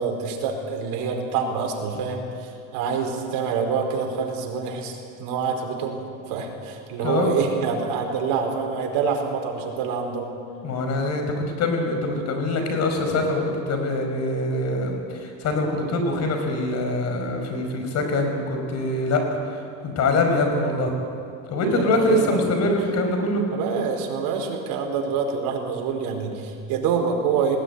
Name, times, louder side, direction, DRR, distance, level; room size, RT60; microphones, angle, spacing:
voice 1, 0.0-10.3 21.7-22.4 23.5-27.6, right 6 dB, 60° right, 2 dB, 4.9 m, -26 dB
voice 2, 7.0-7.4 10.6-19.2 19.8-20.9 21.5-23.4, left 2 dB, 40° left, 4 dB, 5.2 m, -24 dB
19.5 x 18.5 x 9.8 m, 2.5 s
cardioid pair, 140°, 40 cm